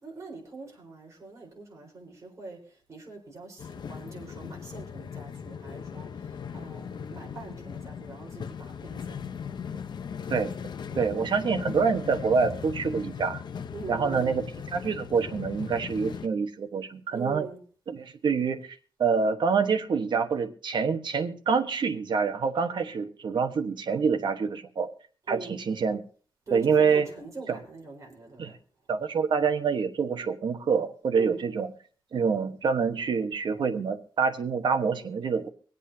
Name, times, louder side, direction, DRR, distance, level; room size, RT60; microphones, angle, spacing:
voice 1, 0.0-9.4 13.7-14.4 17.1-17.6 25.3-25.6 26.5-28.6 31.1-31.4, right 3 dB, 35° right, -1 dB, 4.3 m, -43 dB
sound 1, 3.6-16.3, left 7 dB, 60° left, 0.7 m, -38 dB
voice 2, 10.9-13.4 13.9-14.4 14.7-17.5 17.9-18.7 19.0-24.9 25.3-26.0 26.5-27.1 27.5-27.6 28.4-28.5 28.9-31.7 32.1-35.5, right 5 dB, 60° right, 5 dB, 1.2 m, -26 dB
24.5 x 8.3 x 2.8 m, 0.42 s
wide cardioid pair, 155°, 9 cm